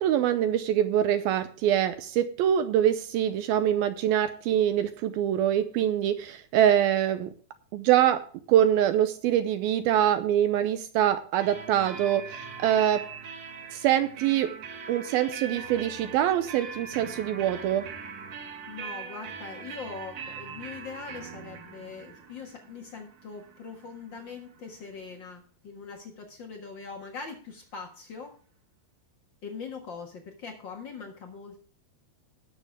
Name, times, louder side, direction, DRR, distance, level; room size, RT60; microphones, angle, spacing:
voice 1, 0.0-7.3 7.7-8.2 8.5-13.1 13.7-14.5 14.9-17.9, right 10 dB, 80° right, 10 dB, 2.3 m, -24 dB
sound 1, 11.4-25.0, right 6 dB, 55° right, 2.2 m, -42 dB
voice 2, 18.7-28.3 29.4-31.7, left 5 dB, 90° left, 2 dB, 1.0 m, -42 dB
19.0 x 6.8 x 3.4 m, 0.43 s
omnidirectional pair, 4.8 m